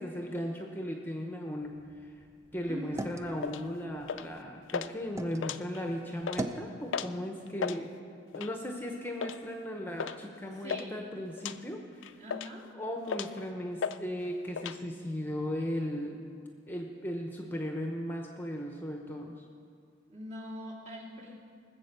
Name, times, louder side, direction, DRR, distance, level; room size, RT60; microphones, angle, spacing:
voice 1, 0.0-2.1 2.5-8.0 8.3-12.2 12.7-16.2 16.7-19.4, equal, 10° left, 2 dB, 0.8 m, -37 dB
sound 1, 1.6-5.4 5.9-6.7, right 2 dB, 15° right, 0.6 m, -42 dB
voice 2, 2.6-3.1 10.5-11.0 12.2-12.7 20.1-21.4, equal, 40° right, -3 dB, 2.6 m, -42 dB
sound 2, 3.4-3.6 4.1-4.4 4.7-4.9 5.3-5.9 6.2-6.4 6.9-7.2 7.5-7.8 8.3-8.6 9.2-9.4 10.0-10.2 10.4-10.9 11.4-11.6 12.0-12.6 13.1-13.4 13.8-14.0 14.3-14.8, left 6 dB, 85° left, 0.4 m, -35 dB
19.5 x 7.8 x 6.7 m, 2.2 s
head